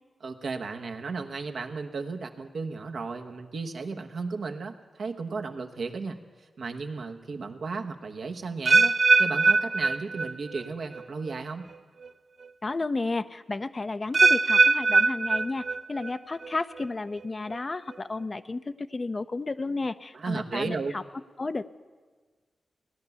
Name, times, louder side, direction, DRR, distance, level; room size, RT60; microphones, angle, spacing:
voice 1, 0.2-6.2 6.6-11.6 20.1-20.9, right 4 dB, 75° right, 4 dB, 1.1 m, -34 dB
sound 1, 8.7-10.7 10.9-11.4 12.0-12.1 14.1-16.1 16.4-16.9 17.5-17.6, right 4 dB, 60° right, 0.6 m, -22 dB
voice 2, 12.6-21.0 21.4-21.7, left 3 dB, 45° left, 11 dB, 0.6 m, -32 dB
17.5 x 11.0 x 6.9 m, 1.4 s
cardioid pair, 45°, 0 cm